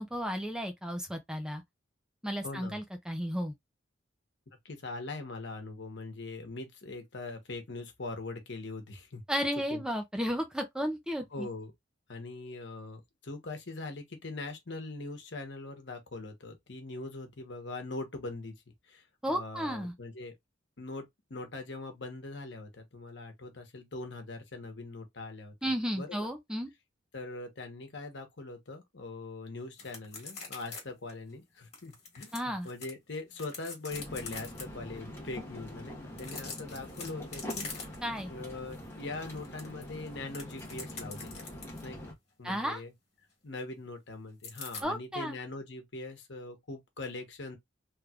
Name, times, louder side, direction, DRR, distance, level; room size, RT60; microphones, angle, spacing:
voice 1, 0.0-1.6 2.2-3.5 9.3-11.5 19.2-19.9 25.6-26.7 32.3-32.7 38.0-38.3 42.4-42.8 44.8-45.4, equal, 5° right, 0.4 m, -33 dB
voice 2, 2.4-2.8 4.6-9.2 9.7-9.8 11.3-11.7 12.1-18.5 18.9-20.3 20.8-25.5 25.9-26.3 27.1-37.9 38.3-41.4 41.8-42.9 43.4-47.6, left 2 dB, 60° left, 1.1 m, -42 dB
sound 1, 29.8-30.8 31.1-31.2 31.7-32.9 33.3-34.6 36.1-38.2 38.6-38.8 39.1-41.9 44.4-44.8, left 4 dB, 35° left, 1.7 m, -43 dB
sound 2, 33.9-42.1, left 1 dB, 15° left, 1.1 m, -44 dB
3.4 x 3.1 x 2.4 m
head